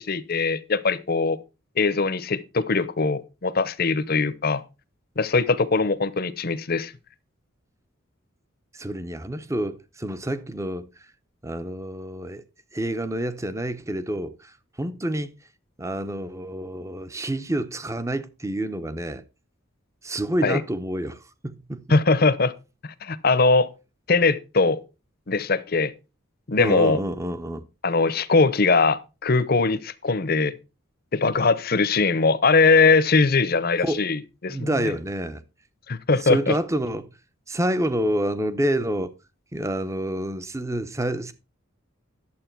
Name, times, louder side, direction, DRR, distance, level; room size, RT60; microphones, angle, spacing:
voice 1, 0.0-1.4 1.8-4.6 5.2-6.9 20.4-20.6 21.9-22.5 22.8-23.7 24.1-24.8 25.3-25.9 26.5-27.0 27.8-30.5 31.1-34.8 35.9-36.5, left 4 dB, 45° left, 0.7 m, -21 dB
voice 2, 8.7-10.9 11.4-12.4 12.7-15.3 15.8-19.2 20.0-21.8 26.6-27.6 33.8-34.1 34.5-35.4 36.2-37.1 37.5-39.1 39.5-41.3, right 1 dB, 15° right, 0.7 m, -28 dB
11.5 x 7.6 x 4.5 m
head